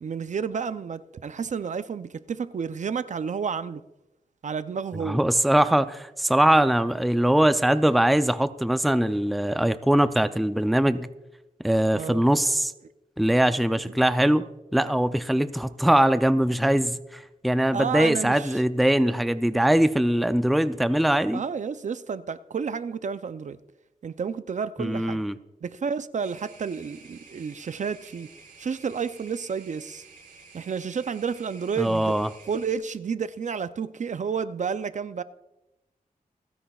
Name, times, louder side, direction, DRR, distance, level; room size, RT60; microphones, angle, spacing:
voice 1, 0.0-3.8 4.4-5.2 11.9-12.2 13.8-13.9 17.7-18.6 21.3-23.6 24.0-25.2 25.6-28.3 28.6-30.0 30.5-32.1 32.5-35.2, right 6 dB, 55° right, 0.5 m, -31 dB
voice 2, 5.0-11.1 11.6-12.7 13.2-14.4 14.7-21.4 24.8-25.4 31.8-32.3, right 1 dB, ahead, 0.4 m, -22 dB
sound 1, 26.2-32.7, right 4 dB, 90° right, 3.3 m, -51 dB
28.0 x 10.0 x 2.3 m
wide cardioid pair, 125°, 15 cm